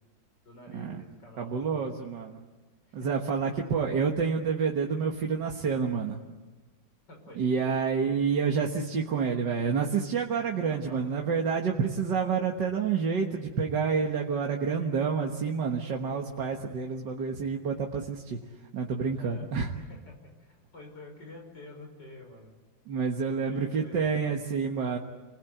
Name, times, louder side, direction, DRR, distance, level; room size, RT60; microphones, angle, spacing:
voice 1, 0.4-1.9 3.0-3.1 7.1-7.7 10.5-11.0 19.1-19.5 19.8-22.5 23.2-24.3, left 1 dB, 65° left, 2 dB, 6.2 m, -49 dB
voice 2, 1.4-2.4 2.9-6.2 7.4-18.4 18.7-19.7 22.9-25.0, right 5 dB, 65° right, 1 dB, 2.1 m, -28 dB
29.5 x 20.5 x 9.3 m, 1.3 s
omnidirectional pair, 2.0 m